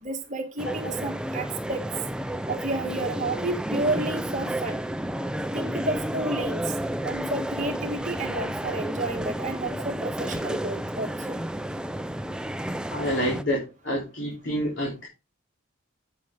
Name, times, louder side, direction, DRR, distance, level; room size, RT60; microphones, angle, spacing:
voice 1, 0.0-1.8 2.5-4.8 5.5-6.7 7.0-11.4, right 2 dB, 35° right, 4 dB, 1.5 m, -31 dB
sound 1, 0.6-13.4, right 1 dB, 5° right, 0.4 m, -31 dB
voice 2, 12.9-15.1, equal, 55° left, -3 dB, 3.5 m, -28 dB
8.7 x 7.5 x 3.7 m, 0.28 s
head